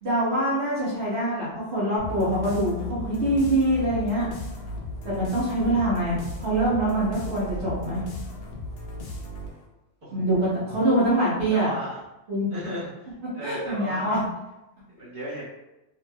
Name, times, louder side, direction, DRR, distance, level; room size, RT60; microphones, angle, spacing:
voice 1, 0.0-4.3 5.0-8.0 10.1-11.7 12.3-12.5 13.4-14.2, right 1 dB, 65° right, -9 dB, 1.1 m, -24 dB
sound 1, 2.0-9.7, left 2 dB, 65° left, 0.8 m, -36 dB
voice 2, 11.5-12.0 12.5-14.1 14.9-15.4, right 1 dB, 30° right, -9 dB, 1.4 m, -35 dB
2.8 x 2.7 x 2.3 m, 0.96 s
omnidirectional pair, 1.2 m